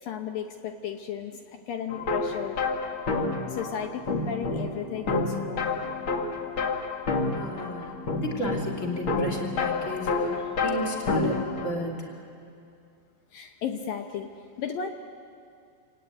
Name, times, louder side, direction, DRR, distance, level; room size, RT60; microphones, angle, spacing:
voice 1, 0.0-2.6 3.5-5.8 13.3-14.3 14.6-14.9, left 8 dB, 70° left, 5 dB, 2.2 m, -34 dB
sound 1, 1.9-11.7, left 3 dB, 50° left, 1.5 m, -29 dB
voice 2, 7.3-10.3 10.6-12.2, equal, 20° left, 0 dB, 2.5 m, -33 dB
28.0 x 18.0 x 9.3 m, 2.4 s
omnidirectional pair, 5.1 m